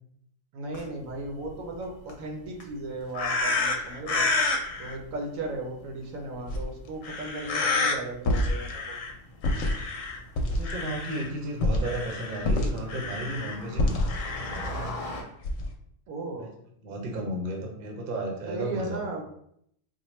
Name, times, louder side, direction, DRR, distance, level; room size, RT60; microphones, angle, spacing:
voice 1, 0.5-4.3 4.8-9.0 16.1-16.5 18.5-19.2, right 2 dB, 80° right, 2 dB, 1.1 m, -36 dB
sound 1, 0.7-15.2, left 1 dB, 45° left, 0.4 m, -45 dB
sound 2, 3.1-5.0 6.5-6.6 7.0-8.0 8.3-9.1 9.4-11.3 11.6-14.7 15.4-15.7, left 2 dB, 75° left, 0.9 m, -28 dB
voice 2, 10.4-14.9 16.3-16.5 16.8-19.0, right 1 dB, 45° right, 1 dB, 0.8 m, -34 dB
4.1 x 2.2 x 3.1 m, 0.70 s
omnidirectional pair, 1.4 m